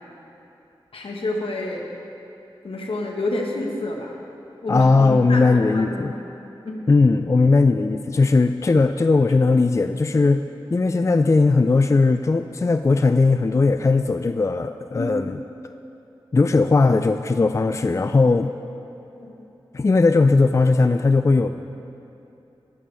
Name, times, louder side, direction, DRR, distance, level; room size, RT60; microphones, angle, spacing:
voice 1, 0.9-1.8 2.6-4.2 4.6-6.2 6.6-6.9 15.0-15.1 19.2-19.4 21.4-21.5, left 2 dB, 80° left, 0 dB, 1.4 m, -29 dB
voice 2, 4.7-6.1 6.9-10.4 10.7-15.4 16.3-18.5 19.7-21.5, left 3 dB, 35° left, 8 dB, 0.3 m, -18 dB
19.0 x 7.0 x 3.4 m, 3.0 s
cardioid pair, 45°, 9 cm